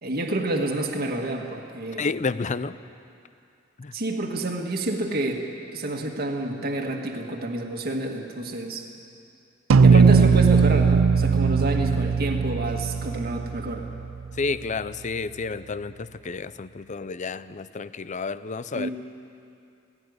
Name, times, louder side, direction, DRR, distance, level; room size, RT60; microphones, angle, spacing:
voice 1, 0.0-2.0 3.9-8.9 9.8-13.8 18.7-18.9, right 2 dB, 50° right, 1 dB, 1.7 m, -29 dB
voice 2, 2.0-2.8 3.8-3.9 9.9-10.0 14.3-18.9, left 4 dB, 35° left, 15 dB, 0.5 m, -30 dB
sound 1, 9.7-14.3, right 5 dB, 90° right, 0.5 m, -19 dB
17.5 x 16.5 x 9.5 m, 2.5 s
head